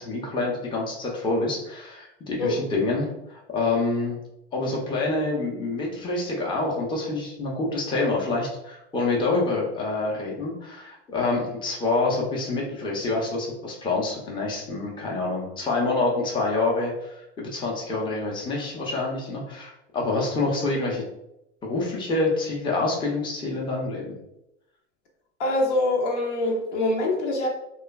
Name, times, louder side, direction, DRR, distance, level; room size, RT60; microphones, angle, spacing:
voice 1, 0.0-4.2 4.5-21.0 21.6-24.2, left 3 dB, 15° left, -2 dB, 0.5 m, -27 dB
voice 2, 25.4-27.5, left 2 dB, 70° left, 1 dB, 0.8 m, -24 dB
3.0 x 2.2 x 2.2 m, 0.85 s
hypercardioid pair, 100°, 36 cm